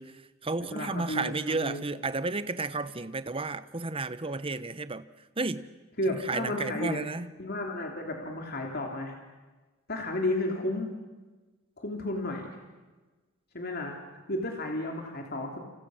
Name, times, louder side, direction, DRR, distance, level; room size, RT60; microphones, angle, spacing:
voice 1, 0.0-5.1 5.4-5.7 6.1-7.3, right 3 dB, 25° right, 0.9 m, -32 dB
voice 2, 0.6-1.8 6.0-7.0 7.4-9.1 9.9-10.9 11.8-12.5 13.5-14.0 14.3-15.6, left 1 dB, 45° left, 3.1 m, -32 dB
29.5 x 28.5 x 6.4 m
head